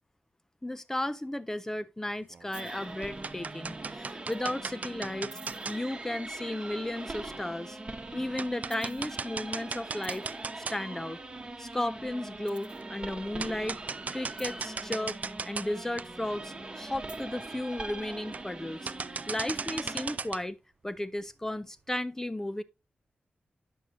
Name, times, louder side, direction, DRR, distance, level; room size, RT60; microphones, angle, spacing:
voice 1, 0.6-7.8 8.1-10.2 10.7-11.2 11.6-13.8 14.1-15.2 15.4-18.9 19.3-20.6 20.8-22.6, left 1 dB, 15° left, 0.4 m, -34 dB
sound 1, 2.3-2.7 3.0-5.8 6.9-7.0 7.5-7.6 8.0-8.1 8.4-11.1 11.5-11.6 12.8-12.9 13.4-15.7 16.0-16.1 16.6-16.7 16.9-17.0 17.3-17.6 18.2-18.6 18.9-20.4, right 5 dB, 50° right, 0.4 m, -37 dB
sound 2, 2.5-20.2, right 2 dB, 30° right, 1.1 m, -42 dB
9.4 x 6.3 x 2.6 m
wide cardioid pair, 105°, 3 cm